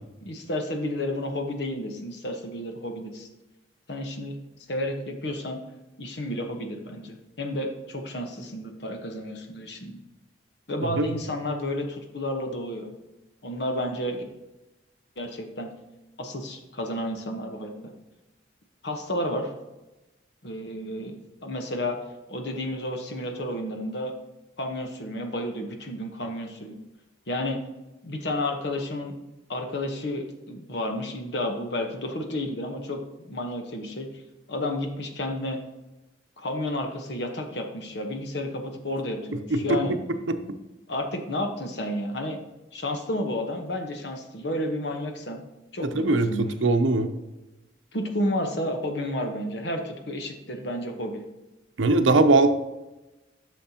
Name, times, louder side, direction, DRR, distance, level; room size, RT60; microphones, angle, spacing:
voice 1, 0.2-3.3 3.9-4.3 4.7-5.6 6.0-10.0 10.7-12.9 13.4-14.2 15.2-15.7 16.2-17.9 18.8-19.5 20.4-21.2 21.4-22.0 22.3-24.2 24.6-26.8 27.3-27.6 28.0-29.1 29.5-34.1 34.5-35.6 36.4-40.0 40.9-42.4 42.7-45.4 45.7-46.5 47.9-51.2, left 1 dB, 60° left, 4 dB, 1.1 m, -31 dB
voice 2, 45.9-47.1 51.8-52.5, right 2 dB, 85° right, 8 dB, 0.7 m, -20 dB
10.0 x 6.5 x 2.9 m, 1.0 s
head